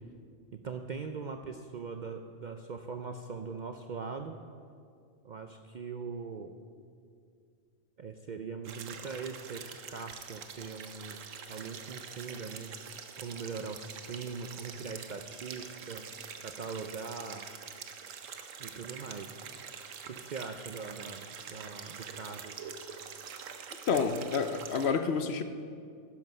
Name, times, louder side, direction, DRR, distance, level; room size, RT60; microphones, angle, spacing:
voice 1, 0.6-4.4 5.2-6.5 8.0-11.2 11.5-12.7 13.2-16.0 16.4-17.4 18.6-19.4 20.1-22.5, right 5 dB, 55° right, 6 dB, 0.5 m, -41 dB
sound 1, 8.6-24.9, right 7 dB, 85° right, 1.2 m, -45 dB
voice 2, 23.9-25.4, left 5 dB, 60° left, 8 dB, 0.9 m, -29 dB
12.0 x 11.0 x 5.4 m, 2.3 s
omnidirectional pair, 1.3 m